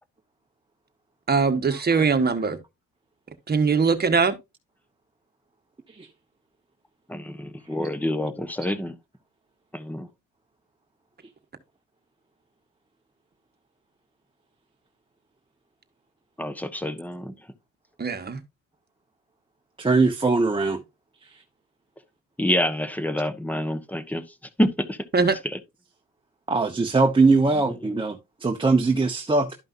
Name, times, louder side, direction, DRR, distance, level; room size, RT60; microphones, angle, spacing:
voice 1, 1.3-2.6 3.5-4.4 18.0-18.4 25.1-25.4, right 5 dB, 30° right, 1.4 m, -21 dB
voice 2, 7.1-8.9 9.7-10.1 16.4-17.3 22.4-24.2 24.6-25.0 27.8-27.9, left 1 dB, 5° left, 1.1 m, -27 dB
voice 3, 19.8-20.8 26.5-29.6, right 3 dB, 15° right, 1.0 m, -21 dB
12.5 x 5.4 x 2.6 m
cardioid pair, 90°, 30 cm